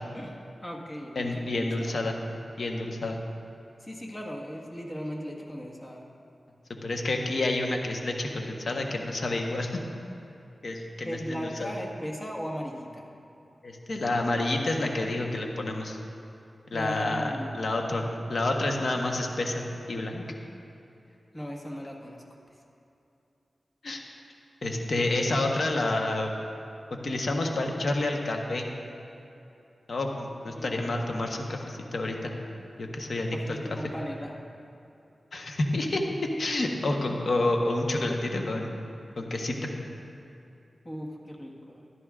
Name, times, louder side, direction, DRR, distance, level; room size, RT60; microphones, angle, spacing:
voice 1, 0.6-2.0 3.8-6.0 11.0-13.1 16.7-17.7 21.3-22.2 30.4-30.9 33.3-34.3 40.8-41.8, equal, 30° left, -1 dB, 1.6 m, -37 dB
voice 2, 1.2-2.2 2.6-3.2 6.8-9.8 10.6-11.7 13.6-16.0 16.7-20.2 23.8-24.0 24.6-26.3 27.0-28.7 29.9-32.3 32.8-33.8 35.3-36.0 36.4-38.7 39.2-39.7, left 2 dB, 70° left, 2 dB, 1.1 m, -29 dB
14.0 x 11.0 x 2.5 m, 2.8 s
cardioid pair, 60°, 0 cm